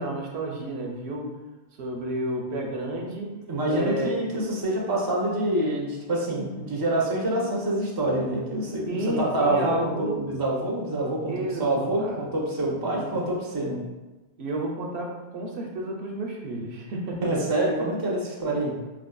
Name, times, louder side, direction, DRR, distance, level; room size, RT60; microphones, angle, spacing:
voice 1, 0.0-1.3 1.8-3.3 3.7-4.4 8.9-10.2 11.3-12.2 12.6-13.1 14.4-17.3, right 1 dB, 80° right, 0 dB, 0.9 m, -31 dB
voice 2, 3.5-13.8 17.2-18.7, right 1 dB, 25° right, -3 dB, 0.6 m, -26 dB
4.7 x 2.5 x 2.2 m, 1.1 s
omnidirectional pair, 1.1 m